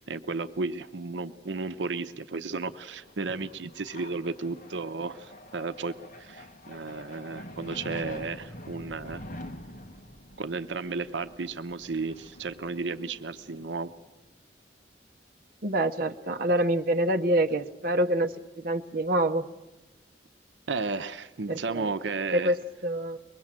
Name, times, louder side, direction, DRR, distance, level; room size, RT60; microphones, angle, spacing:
voice 1, 0.0-9.2 10.4-13.9 20.7-22.5, right 4 dB, 85° right, 11 dB, 0.8 m, -33 dB
sound 1, 2.7-14.0, left 1 dB, 45° left, 1.8 m, -46 dB
voice 2, 15.6-19.4 21.5-21.9 22.3-23.2, right 1 dB, 50° right, 4 dB, 0.8 m, -26 dB
23.0 x 21.0 x 7.5 m, 1.1 s
head